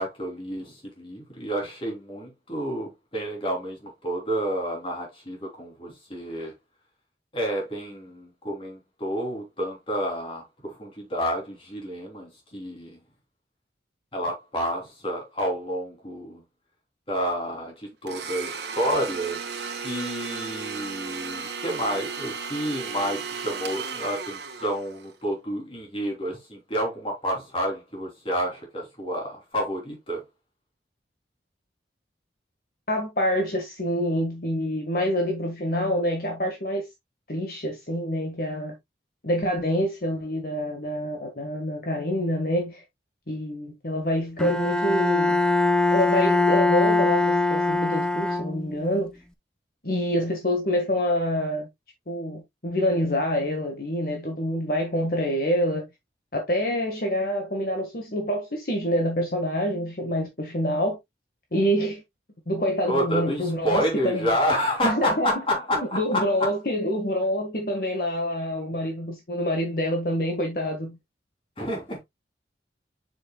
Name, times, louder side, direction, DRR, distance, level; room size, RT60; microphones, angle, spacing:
voice 1, 0.0-6.5 7.3-13.0 14.1-16.4 17.1-19.4 19.8-30.2 62.9-66.5 71.6-72.0, equal, 30° left, 3.3 m, -29 dB
Domestic sounds home sounds, 18.1-25.1, right 5 dB, 75° right, 1.6 m, -34 dB
voice 2, 32.9-36.9 37.3-38.7 39.2-42.8 43.3-45.4 45.9-49.1 49.8-51.7 52.1-55.9 56.3-61.0 61.5-62.0 62.5-64.3 64.8-65.4 65.7-71.0, equal, 55° left, 1.6 m, -26 dB
Bowed string instrument, 44.4-48.9, left 2 dB, 5° left, 0.6 m, -22 dB
7.5 x 6.3 x 2.3 m
head